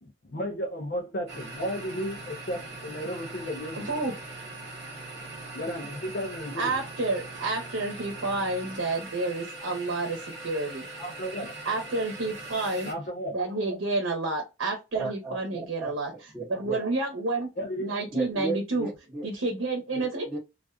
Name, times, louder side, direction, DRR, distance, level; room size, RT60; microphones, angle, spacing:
voice 1, 0.0-3.9 5.5-6.7 11.0-11.5 12.9-13.4 17.6-17.9, equal, 50° left, 0.5 m, -34 dB
sound 1, 1.3-12.9, right 2 dB, 35° right, 1.0 m, -41 dB
voice 2, 3.8-4.1 6.6-10.8 11.6-12.9 13.3-16.1 16.5-17.5 17.8-18.9 19.2-20.3, right 2 dB, 85° right, 0.8 m, -29 dB
voice 3, 14.9-16.8 18.1-19.3 19.9-20.4, right 3 dB, 10° right, 0.7 m, -35 dB
2.4 x 2.3 x 2.3 m
head